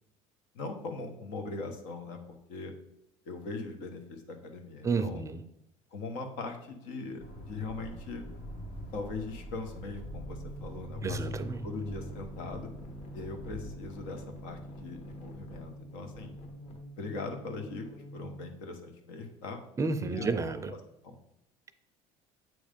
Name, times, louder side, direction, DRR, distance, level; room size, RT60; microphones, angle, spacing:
voice 1, 0.5-2.2 2.5-2.7 3.2-5.2 5.9-8.3 8.9-11.2 11.6-12.7 13.1-16.3 17.0-19.6 20.0-20.3 20.7-20.8 21.0-21.2, left 3 dB, 85° left, 5 dB, 1.1 m, -40 dB
voice 2, 4.8-5.4 11.0-11.7 19.8-20.7, right 4 dB, 20° right, 11 dB, 0.4 m, -31 dB
Accelerating revving vroom, 7.2-13.8, equal, 65° left, 1.6 m, -43 dB
sound 1, 10.0-18.6, equal, 45° left, 1.2 m, -46 dB
7.7 x 3.2 x 5.1 m, 0.84 s
cardioid pair, 120°, 14 cm